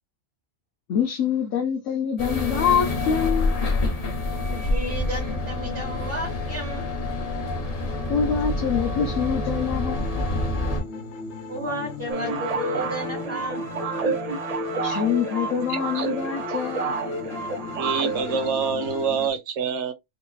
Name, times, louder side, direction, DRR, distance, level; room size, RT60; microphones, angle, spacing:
voice 1, 0.9-3.6 8.1-10.2 14.8-17.0, left 7 dB, 85° left, 1.2 m, -25 dB
sound 1, 2.2-10.8, left 2 dB, 40° left, 0.7 m, -27 dB
voice 2, 4.4-6.9 11.5-13.6, equal, 25° right, 1.5 m, -33 dB
sound 2, 9.9-19.3, left 3 dB, 65° left, 1.1 m, -36 dB
sound 3, 12.1-18.5, right 4 dB, 45° right, 0.5 m, -29 dB
voice 3, 15.7-16.1 17.7-19.9, right 6 dB, 70° right, 1.0 m, -26 dB
4.2 x 2.7 x 2.3 m
omnidirectional pair, 1.3 m